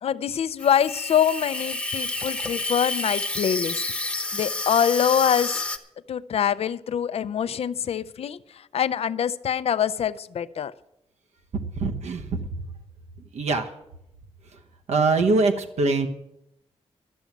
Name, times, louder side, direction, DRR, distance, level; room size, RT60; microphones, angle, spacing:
voice 1, 0.0-3.8 4.3-5.6 6.1-10.7, left 8 dB, 65° left, 16 dB, 0.5 m, -24 dB
Water tap faucet / Sink (filling or washing), 0.6-5.8, left 2 dB, 10° left, 0.9 m, -30 dB
voice 2, 11.8-12.3 13.3-13.7 14.9-16.1, right 3 dB, 90° right, 4 dB, 1.1 m, -22 dB
12.5 x 7.2 x 9.0 m, 0.83 s
wide cardioid pair, 145°, 11 cm